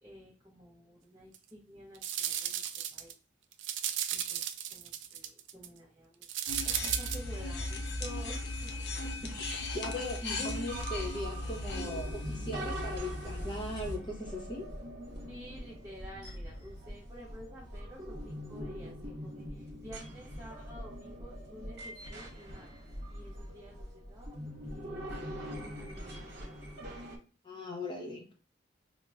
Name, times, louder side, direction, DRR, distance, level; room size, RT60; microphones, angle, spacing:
voice 1, 0.0-3.1 4.1-9.3 15.3-26.6, equal, 20° right, -6 dB, 0.6 m, -52 dB
sound 1, 1.3-1.4 2.0-3.1 3.5-5.7 6.2-7.2, right 10 dB, 70° right, 0.4 m, -35 dB
sound 2, 6.5-14.0, left 2 dB, 60° left, 0.6 m, -37 dB
voice 2, 9.2-14.7 27.4-28.2, left 1 dB, 25° left, 0 dB, 0.8 m, -39 dB
sound 3, 10.4-27.2, equal, 55° right, 1.0 m, -43 dB
5.3 x 2.0 x 2.3 m, 0.35 s
head